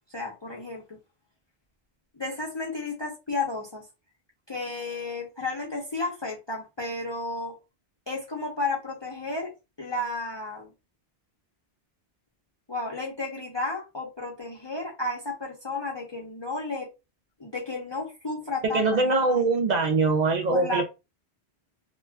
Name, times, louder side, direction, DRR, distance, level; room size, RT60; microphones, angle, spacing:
voice 1, 0.1-1.0 2.1-3.8 4.5-7.6 8.1-9.5 9.8-10.7 12.7-16.9 17.4-18.9 20.5-20.8, left 3 dB, 30° left, 0.5 m, -32 dB
voice 2, 18.6-20.8, right 3 dB, 55° right, 0.5 m, -23 dB
2.3 x 2.2 x 3.3 m
omnidirectional pair, 1.1 m